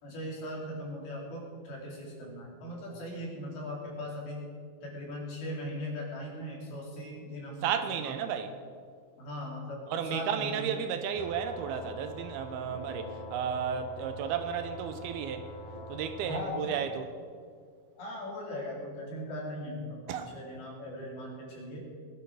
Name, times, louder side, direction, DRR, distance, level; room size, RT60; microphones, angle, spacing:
voice 1, 0.0-4.5 4.8-8.1 9.2-9.8 10.1-10.6 16.2-16.7 18.0-21.9, left 1 dB, 70° left, -4 dB, 5.5 m, -39 dB
voice 2, 7.6-8.5 9.9-15.5 15.9-17.1 20.1-20.3, right 7 dB, 75° right, 8 dB, 2.6 m, -33 dB
sound 1, 11.1-16.4, left 1 dB, 50° left, 4.4 m, -44 dB
20.5 x 10.5 x 4.9 m, 2.1 s
omnidirectional pair, 4.6 m